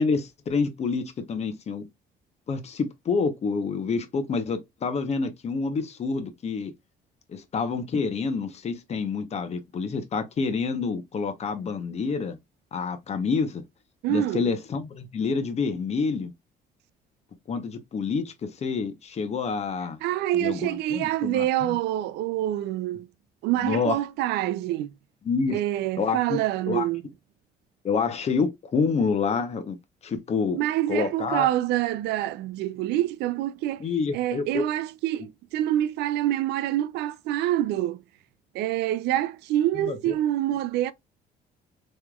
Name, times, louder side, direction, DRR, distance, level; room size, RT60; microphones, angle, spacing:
voice 1, 0.0-1.8 2.5-6.7 7.3-12.4 12.7-13.6 14.1-16.3 17.5-20.0 20.4-21.8 23.6-24.0 25.2-25.6 26.0-26.4 26.7-26.9 27.8-29.8 30.0-30.6 30.9-31.5 33.8-34.7 39.8-40.1 40.5-40.6, left 5 dB, 40° left, 0.9 m, -28 dB
voice 2, 14.0-14.5 20.0-23.1 23.4-24.9 25.5-27.0 30.5-33.8 34.1-38.0 38.5-40.9, right 13 dB, 80° right, 0.4 m, -26 dB
3.6 x 3.1 x 2.3 m
cardioid pair, 110°, 17 cm